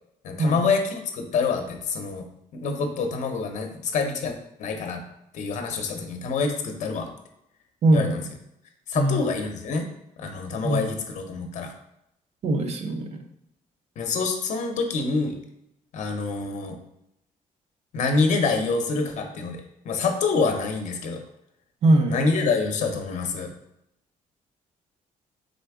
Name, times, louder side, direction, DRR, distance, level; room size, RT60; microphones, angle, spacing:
voice 1, 0.2-2.2 2.5-5.0 5.3-7.1 7.9-8.2 8.9-9.9 10.2-11.7 14.0-15.4 15.9-16.8 17.9-21.2 22.1-23.5, left 4 dB, 55° left, 5 dB, 0.6 m, -26 dB
voice 2, 7.8-8.2 9.0-9.2 10.6-10.9 12.4-13.3 21.8-22.2, right 1 dB, 50° right, 4 dB, 0.5 m, -21 dB
3.9 x 3.4 x 3.5 m, 0.81 s
cardioid pair, 125°, 14 cm